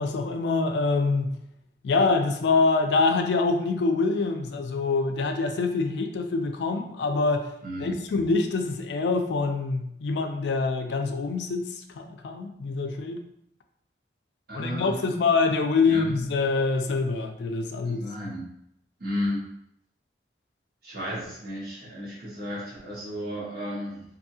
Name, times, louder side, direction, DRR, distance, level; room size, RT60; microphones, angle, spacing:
voice 1, 0.0-1.3 1.8-7.5 7.8-13.2 14.5-18.0, left 3 dB, 75° left, 5 dB, 0.4 m, -25 dB
voice 2, 7.6-8.0 14.5-15.3 15.8-16.2 17.8-18.5 19.0-19.5 20.8-24.0, equal, 55° right, -6 dB, 1.1 m, -33 dB
2.7 x 2.6 x 2.7 m, 0.75 s
head